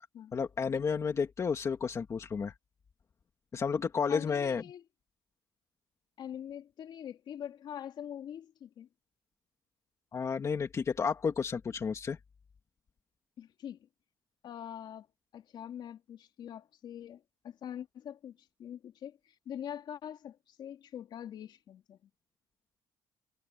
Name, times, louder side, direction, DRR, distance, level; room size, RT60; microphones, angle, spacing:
voice 1, 0.3-2.5 3.5-4.6 10.1-12.2, left 6 dB, 35° left, 2.3 m, -31 dB
voice 2, 4.1-4.8 6.2-8.9 13.4-13.9 14.4-15.1 15.3-22.1, left 9 dB, 55° left, 3.1 m, -44 dB
cardioid pair, 130°, 9 cm